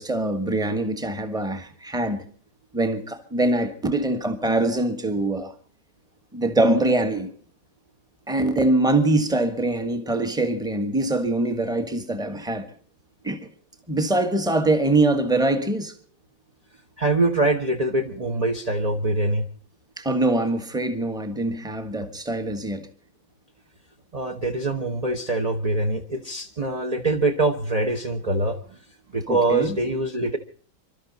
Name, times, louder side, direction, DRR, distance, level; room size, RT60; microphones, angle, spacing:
voice 1, 0.0-2.2 2.7-5.5 6.3-7.3 8.3-12.7 13.2-13.5 13.9-15.9 20.0-22.9 29.3-29.8, right 2 dB, ahead, 1.1 m, -23 dB
voice 2, 17.0-19.5 24.1-28.6 29.1-30.4, right 2 dB, 30° right, 0.7 m, -24 dB
28.0 x 12.5 x 4.1 m
omnidirectional pair, 2.2 m